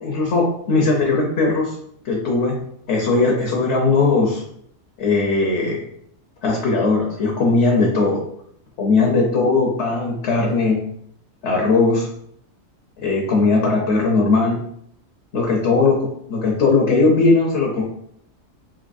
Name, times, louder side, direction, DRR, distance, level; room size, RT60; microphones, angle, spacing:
voice 1, 0.0-1.8 2.0-2.6 2.9-4.4 5.0-5.8 6.4-8.2 8.8-10.8 11.4-12.1 13.0-14.6 15.3-17.8, left 3 dB, 65° left, -1 dB, 1.0 m, -18 dB
3.9 x 2.8 x 2.5 m, 0.69 s
omnidirectional pair, 1.3 m